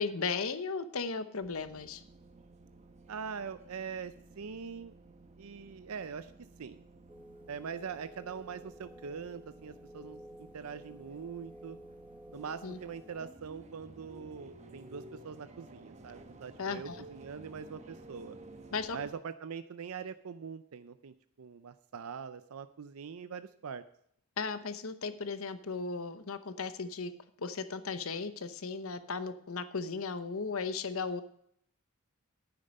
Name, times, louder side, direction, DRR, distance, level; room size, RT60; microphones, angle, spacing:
voice 1, 0.0-2.0 12.6-12.8 16.6-17.0 18.7-19.0 24.4-27.1 27.4-31.2, left 4 dB, 65° left, 12 dB, 0.9 m, -36 dB
sound 1, 1.4-19.1, right 2 dB, 30° right, 1.1 m, -54 dB
voice 2, 3.1-4.9 5.4-6.3 6.6-6.8 7.5-11.8 12.3-18.4 18.9-23.8, right 6 dB, 75° right, 12 dB, 0.5 m, -43 dB
sound 2, 7.1-13.3, equal, 5° right, 1.1 m, -53 dB
10.5 x 9.0 x 5.3 m, 0.69 s
head